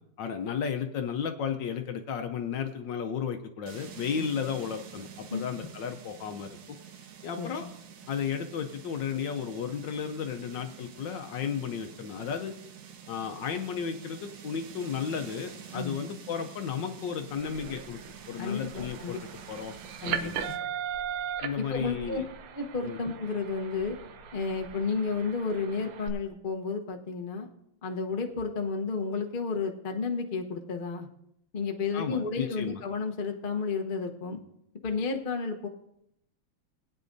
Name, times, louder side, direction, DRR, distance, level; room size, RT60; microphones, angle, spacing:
voice 1, 0.2-6.8 7.2-7.7 8.1-12.5 13.1-18.0 18.3-19.7 20.1-20.4 21.4-22.3 22.8-23.0 31.9-32.8, left 7 dB, 70° left, 6 dB, 1.3 m, -34 dB
sound 1, 3.7-20.6, right 8 dB, 65° right, 1.6 m, -48 dB
voice 2, 7.4-7.7 15.7-16.0 18.4-19.2 20.0-20.6 21.6-22.2 22.5-24.0 24.3-27.5 27.8-31.1 31.5-34.4 34.8-35.7, left 4 dB, 40° left, 3 dB, 0.7 m, -32 dB
sound 2, 17.4-26.1, right 8 dB, 85° right, 1.8 m, -39 dB
20.5 x 9.3 x 2.6 m, 0.77 s
omnidirectional pair, 2.3 m